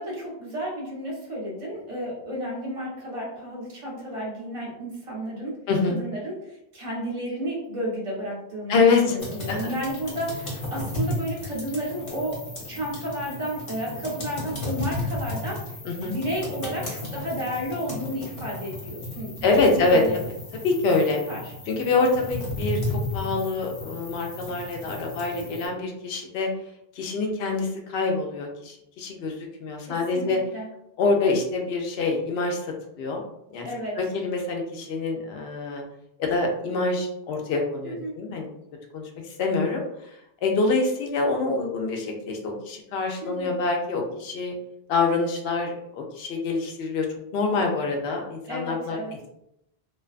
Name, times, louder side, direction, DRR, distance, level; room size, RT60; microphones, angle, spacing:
voice 1, 0.0-5.6 5.9-12.4 12.7-15.8 16.0-20.2 21.3-21.5 25.3-25.6 29.8-30.7 33.6-34.0 37.8-38.1 43.2-43.6 48.5-49.3, equal, 35° right, -5 dB, 0.8 m, -32 dB
voice 2, 8.7-9.2 9.5-9.7 15.8-16.1 19.4-20.3 20.6-21.2 21.7-22.8 23.1-26.5 26.9-30.4 31.0-33.2 33.5-33.7 34.0-35.8 36.2-38.5 38.9-39.8 40.4-44.5 44.9-47.1 47.3-49.0, left 3 dB, 75° left, 1 dB, 0.8 m, -25 dB
sound 1, 9.2-25.7, left 2 dB, 60° left, 1.1 m, -34 dB
2.5 x 2.2 x 2.3 m, 0.80 s
omnidirectional pair, 1.1 m